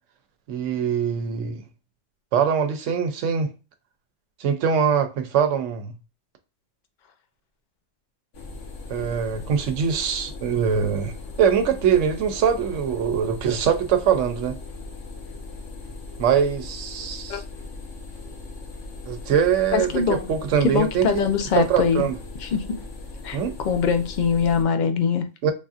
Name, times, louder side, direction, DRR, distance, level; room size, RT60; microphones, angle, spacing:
voice 1, 0.5-1.6 2.3-3.5 4.4-5.9 8.9-14.6 16.2-17.4 19.1-21.2 21.6-22.1 23.3-23.5 25.4-25.5, right 7 dB, 90° right, 1.0 m, -23 dB
sound 1, 8.3-24.6, left 3 dB, 85° left, 1.2 m, -38 dB
voice 2, 19.7-20.3 20.6-22.1 22.4-22.8 23.2-23.4 23.6-25.2, left 6 dB, 55° left, 0.5 m, -22 dB
3.5 x 2.6 x 2.4 m
omnidirectional pair, 1.2 m